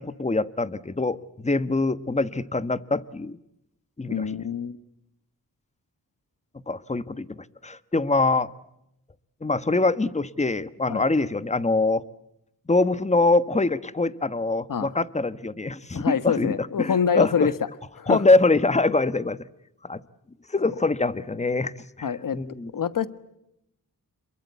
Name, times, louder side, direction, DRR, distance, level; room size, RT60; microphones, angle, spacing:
voice 1, 0.0-3.4 4.0-4.2 6.7-7.4 7.6-8.5 9.4-12.0 12.7-17.5 18.1-19.4 19.8-20.0 20.5-21.7 22.0-22.1 22.3-22.7, left 3 dB, 20° left, 14 dB, 1.2 m, -24 dB
voice 2, 4.1-4.8 10.9-11.0 14.7-14.9 15.9-17.5 17.9-18.2 22.0-22.4 22.7-23.1, left 7 dB, 65° left, 13 dB, 1.4 m, -25 dB
28.0 x 22.5 x 8.2 m, 0.81 s
wide cardioid pair, 95°, 35 cm